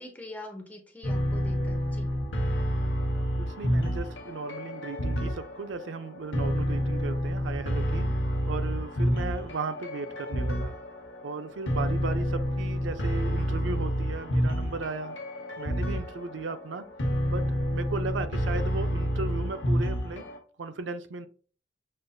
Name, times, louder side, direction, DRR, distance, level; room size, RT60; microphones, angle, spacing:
voice 1, 0.0-2.1, left 1 dB, 10° left, 3 dB, 0.7 m, -43 dB
sound 1, 1.0-20.4, equal, 70° left, 1.0 m, -29 dB
voice 2, 3.4-8.1 8.5-10.8 11.2-15.2 15.6-16.9 17.3-17.4 17.7-20.3 20.6-21.3, right 3 dB, 80° right, 10 dB, 0.5 m, -36 dB
6.4 x 2.6 x 2.3 m, 0.40 s
head